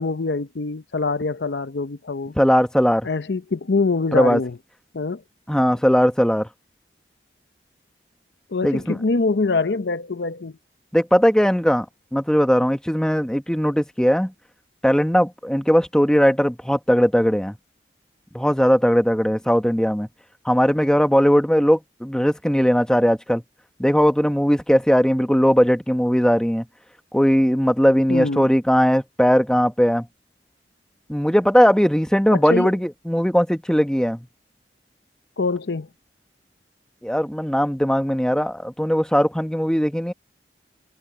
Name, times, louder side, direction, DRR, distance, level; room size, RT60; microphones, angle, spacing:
voice 1, 0.0-2.3 3.0-4.6 4.9-5.2 8.5-10.6 28.1-28.5 32.3-32.7 35.4-35.9, left 3 dB, 75° left, 0.7 m, -24 dB
voice 2, 2.4-3.1 4.1-4.4 5.5-6.5 8.6-9.0 10.9-11.8 12.1-14.3 14.8-17.5 18.3-20.1 20.4-23.4 23.8-26.7 27.1-30.1 31.1-34.3 37.0-40.1, equal, 5° left, 1.1 m, -19 dB
head